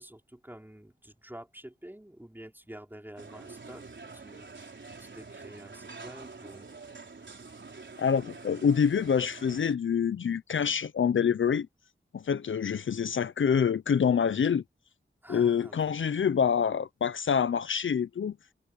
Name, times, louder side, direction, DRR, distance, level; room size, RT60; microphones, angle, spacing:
voice 1, 0.0-3.8 4.1-6.7 15.2-15.9, right 1 dB, 10° right, 4.5 m, -48 dB
sound 1, 3.2-9.7, right 4 dB, 65° right, 4.1 m, -46 dB
voice 2, 8.0-11.7 12.1-14.6 15.3-18.3, left 7 dB, 70° left, 0.5 m, -26 dB
wide cardioid pair, 90°, 21 cm